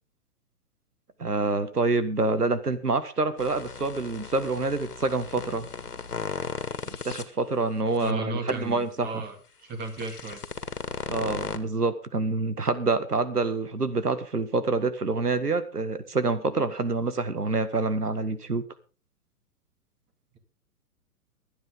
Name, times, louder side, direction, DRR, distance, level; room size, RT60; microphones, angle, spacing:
voice 1, 1.2-5.7 6.9-9.2 11.1-18.6, right 3 dB, 85° right, 11 dB, 1.8 m, -27 dB
sound 1, 3.4-7.2 7.9-8.0 8.5-8.6 9.8-11.6, left 5 dB, 80° left, 2.0 m, -36 dB
voice 2, 8.0-10.4, right 3 dB, 20° right, 7 dB, 2.7 m, -34 dB
23.0 x 9.5 x 3.7 m, 0.35 s
figure-of-eight pair, 115°, 45 cm